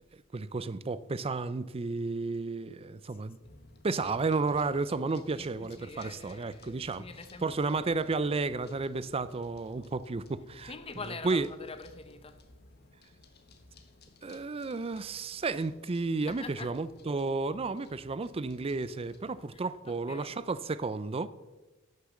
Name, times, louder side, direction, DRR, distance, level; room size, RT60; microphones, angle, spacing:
voice 1, 0.1-3.4 3.8-7.1 7.4-10.7 11.2-11.5 14.2-21.3, right 3 dB, 30° right, 0.4 m, -32 dB
voice 2, 3.2-3.6 5.4-8.0 10.7-12.4 16.3-16.7 19.5-19.6 20.1-20.3, left 4 dB, 30° left, 0.8 m, -45 dB
sound 1, 3.4-19.5, left 2 dB, 50° left, 1.3 m, -57 dB
11.0 x 6.8 x 7.1 m
head